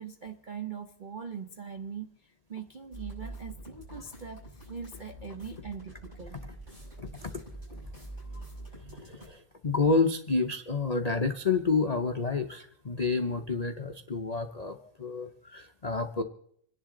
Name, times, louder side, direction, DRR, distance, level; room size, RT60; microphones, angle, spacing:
voice 1, 0.0-6.4 8.8-9.1, right 7 dB, 65° right, 5 dB, 0.4 m, -42 dB
sound 1, 2.9-9.3, right 1 dB, 25° right, 6.5 m, -45 dB
voice 2, 7.0-7.3 8.9-16.2, left 4 dB, 75° left, 5 dB, 0.3 m, -29 dB
27.0 x 10.5 x 3.8 m, 0.69 s
omnidirectional pair, 1.9 m